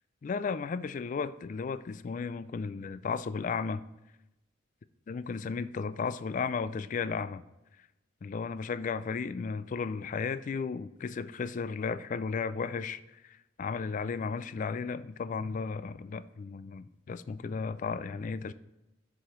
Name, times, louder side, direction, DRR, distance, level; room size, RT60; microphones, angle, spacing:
voice 1, 0.2-3.8 5.1-7.4 8.2-18.5, left 5 dB, 40° left, 15 dB, 0.3 m, -34 dB
6.4 x 4.9 x 4.4 m, 0.95 s
head